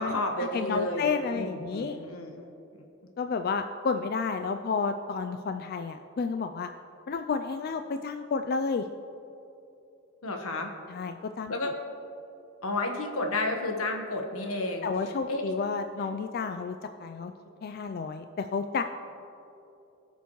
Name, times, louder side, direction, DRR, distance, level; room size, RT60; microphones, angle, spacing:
voice 1, 0.0-1.1 1.3-2.5 10.2-10.7 11.5-11.7 12.6-14.9 15.3-15.5, left 2 dB, 85° left, 3 dB, 1.3 m, -31 dB
voice 2, 0.5-2.0 3.2-6.7 7.1-8.9 10.9-11.5 14.8-17.3 17.6-18.8, left 5 dB, 45° left, 7 dB, 0.3 m, -31 dB
20.5 x 6.9 x 3.1 m, 2.9 s
head